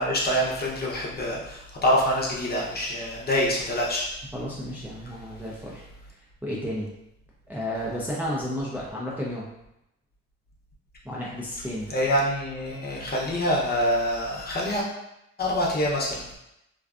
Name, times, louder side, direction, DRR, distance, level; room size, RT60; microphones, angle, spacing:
voice 1, 0.0-4.1 11.9-14.8 15.4-16.2, equal, 30° left, -4 dB, 0.7 m, -25 dB
voice 2, 4.3-5.8 6.4-6.9 7.5-9.5 11.0-11.9, equal, 5° right, -6 dB, 0.5 m, -32 dB
2.5 x 2.2 x 2.4 m, 0.84 s
cardioid pair, 90°, 30 cm